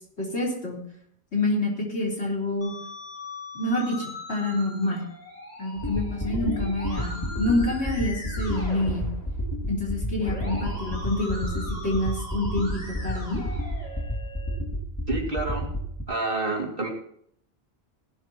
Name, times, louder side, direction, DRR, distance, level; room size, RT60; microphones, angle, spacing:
voice 1, 0.2-0.8 1.3-2.7 3.5-5.0 5.6-9.1 9.7-13.4, left 2 dB, 85° left, -3 dB, 4.0 m, -27 dB
Musical instrument, 2.6-14.6, left 1 dB, 40° left, 5.4 m, -41 dB
sound 1, 5.8-16.0, equal, 20° left, 2.2 m, -31 dB
voice 2, 15.1-15.7 16.1-16.9, right 2 dB, 55° right, 0 dB, 2.6 m, -28 dB
17.5 x 12.0 x 2.9 m, 0.67 s
omnidirectional pair, 1.1 m